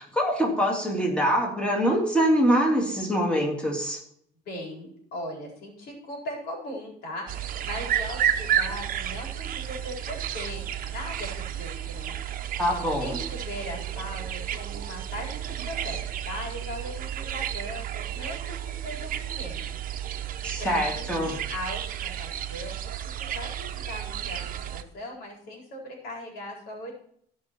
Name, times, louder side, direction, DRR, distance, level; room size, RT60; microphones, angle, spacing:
voice 1, 0.0-4.0 12.6-13.2 20.4-21.4, equal, 5° left, -1 dB, 2.9 m, -24 dB
voice 2, 4.5-7.3 7.6-12.6 13.0-18.6 18.8-19.8 20.6-22.8 23.2-27.0, left 1 dB, 70° left, -1 dB, 4.2 m, -39 dB
sound 1, 7.3-24.8, right 10 dB, 55° right, 0.9 m, -32 dB
16.0 x 5.7 x 4.5 m, 0.66 s
cardioid pair, 110°, 17 cm